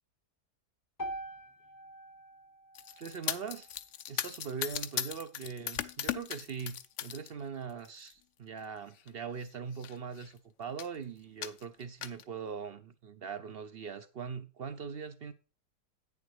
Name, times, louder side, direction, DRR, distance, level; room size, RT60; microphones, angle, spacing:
sound 1, 1.0-5.2, right 1 dB, 20° left, 0.5 m, -46 dB
sound 2, 2.7-7.3 7.7-8.1 9.0-9.1 9.4-9.5 9.7-10.3 10.8-11.0 11.4-12.2, left 10 dB, 65° left, 0.7 m, -38 dB
voice 1, 3.0-3.7 4.1-15.3, right 6 dB, 60° right, 0.6 m, -41 dB
9.2 x 7.0 x 4.7 m
omnidirectional pair, 1.7 m